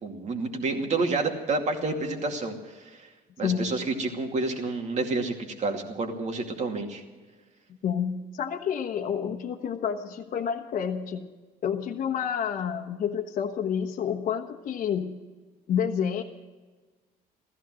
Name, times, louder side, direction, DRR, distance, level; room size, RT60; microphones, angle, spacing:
voice 1, 0.0-3.1 3.4-7.0, right 3 dB, 45° right, 3 dB, 2.4 m, -29 dB
voice 2, 3.4-3.8 7.8-11.3 11.6-15.2 15.7-16.2, left 8 dB, 55° left, 1 dB, 1.2 m, -29 dB
15.0 x 15.0 x 6.3 m, 1.3 s
cardioid pair, 110°, 17 cm